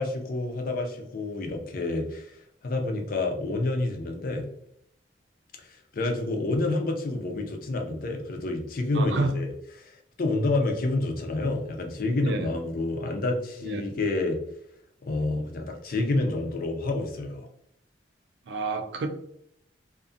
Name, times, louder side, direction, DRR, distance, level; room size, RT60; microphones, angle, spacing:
voice 1, 0.0-2.3 2.6-4.5 5.9-9.5 9.8-9.9 10.2-14.4 15.0-17.5, left 2 dB, 50° left, 4 dB, 0.4 m, -28 dB
voice 2, 8.9-9.4 12.2-12.5 13.6-13.8 18.5-19.1, right 3 dB, 70° right, 6 dB, 0.4 m, -29 dB
2.5 x 2.3 x 2.5 m, 0.74 s
head